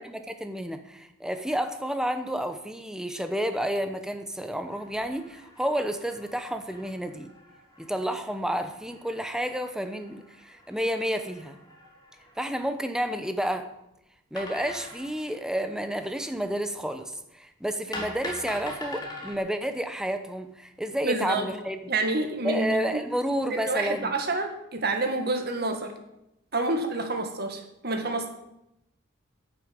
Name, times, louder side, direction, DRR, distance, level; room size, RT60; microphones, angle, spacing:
voice 1, 0.0-7.3 7.8-11.6 12.4-13.7 14.3-21.9 22.4-24.1, equal, 5° right, 8 dB, 0.9 m, -30 dB
sound 1, 4.6-12.6 14.4-16.4 17.9-19.4, left 1 dB, 20° left, 2.6 m, -44 dB
voice 2, 21.0-21.4 21.9-23.0 23.5-25.9 26.5-28.3, right 2 dB, 50° right, 5 dB, 1.9 m, -28 dB
11.0 x 7.1 x 8.8 m, 0.86 s
head